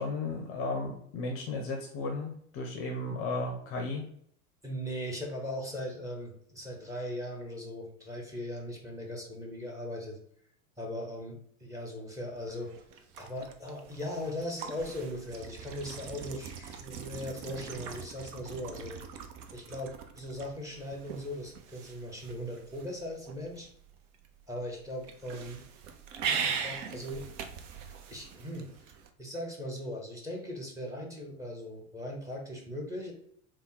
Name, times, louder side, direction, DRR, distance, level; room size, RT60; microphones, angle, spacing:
voice 1, 0.0-4.1, left 2 dB, 30° left, 2 dB, 0.6 m, -34 dB
voice 2, 4.6-10.2 10.8-12.7 13.2-19.0 19.5-23.7 24.5-25.6 26.2-27.3 28.1-28.8 29.2-33.1, left 1 dB, 5° right, 0 dB, 0.8 m, -39 dB
sound 1, 12.4-29.1, right 6 dB, 55° right, 0.6 m, -41 dB
3.5 x 2.2 x 4.0 m, 0.66 s
figure-of-eight pair, 85°, 45 cm